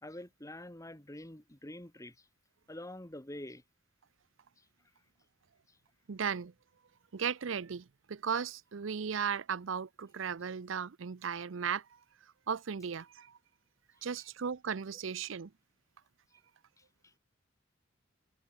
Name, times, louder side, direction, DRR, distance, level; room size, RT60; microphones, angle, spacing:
voice 1, 0.0-2.3 2.7-3.6 4.6-4.7 5.7-5.8 16.8-17.2, left 1 dB, 15° left, 1.9 m, -47 dB
voice 2, 6.1-6.5 7.1-11.8 12.5-13.3 14.0-15.5, right 7 dB, 75° right, 0.6 m, -36 dB
head